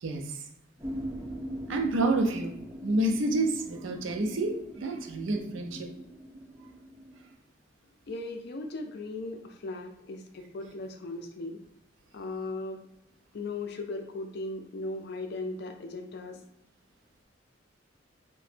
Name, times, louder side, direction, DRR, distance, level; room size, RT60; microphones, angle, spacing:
voice 1, 0.0-0.4 1.7-2.5 2.8-5.9, right 2 dB, 80° right, 4 dB, 0.5 m, -29 dB
sound 1, 0.8-7.3, equal, 15° right, 0.4 m, -41 dB
voice 2, 8.1-11.6 12.1-12.8 13.3-16.4, left 2 dB, 55° left, 5 dB, 0.4 m, -37 dB
2.9 x 2.1 x 3.2 m, 0.78 s
head